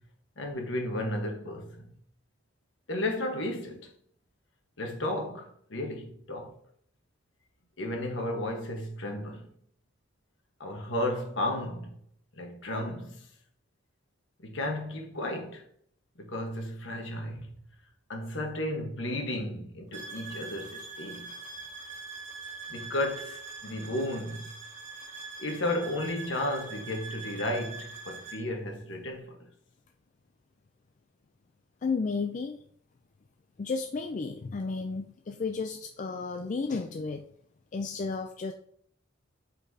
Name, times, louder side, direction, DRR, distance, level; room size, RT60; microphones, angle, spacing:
voice 1, 0.4-1.9 2.9-3.9 4.8-6.6 7.8-9.5 10.6-12.0 12.4-13.3 14.4-15.6 16.2-17.5 18.1-21.3 22.7-24.5 25.4-29.4, left 1 dB, 65° left, 1.3 m, -33 dB
sound 1, 19.9-28.4, right 4 dB, 40° right, 1.4 m, -43 dB
voice 2, 31.8-32.6 33.6-37.3 37.7-38.5, left 4 dB, 40° left, 0.4 m, -33 dB
7.8 x 4.4 x 2.8 m
head